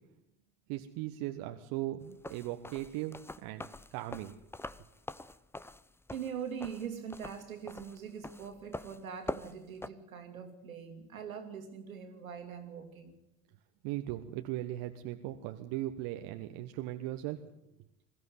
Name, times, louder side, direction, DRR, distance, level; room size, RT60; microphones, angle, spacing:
voice 1, 0.7-3.7 3.9-4.3 13.8-17.4, right 15 dB, 55° right, 6 dB, 1.4 m, -38 dB
sound 1, 2.1-9.9, left 2 dB, 5° left, 0.7 m, -44 dB
voice 2, 6.1-13.2, right 7 dB, 80° right, 6 dB, 2.6 m, -42 dB
22.5 x 14.5 x 9.7 m, 0.86 s
figure-of-eight pair, 60°, 41 cm